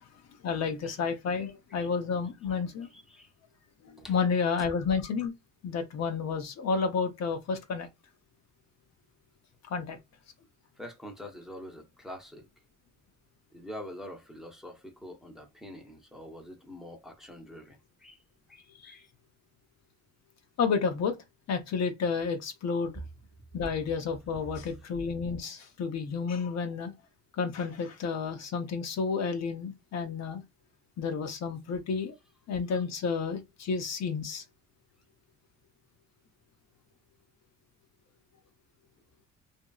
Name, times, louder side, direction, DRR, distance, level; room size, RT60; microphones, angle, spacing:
voice 1, 0.4-2.9 3.8-5.3 5.6-7.9 9.7-10.0 18.8-18.9 20.6-21.2 21.5-23.0 23.5-26.9 27.4-30.4 31.0-32.1 32.5-34.4, left 5 dB, 60° left, 0.7 m, -31 dB
voice 2, 1.3-1.9 2.5-2.6 2.9-3.3 4.0-4.2 10.8-12.5 13.5-18.2 18.5-19.1, left 1 dB, ahead, 0.7 m, -46 dB
2.7 x 2.6 x 2.3 m
cardioid pair, 90°, 30 cm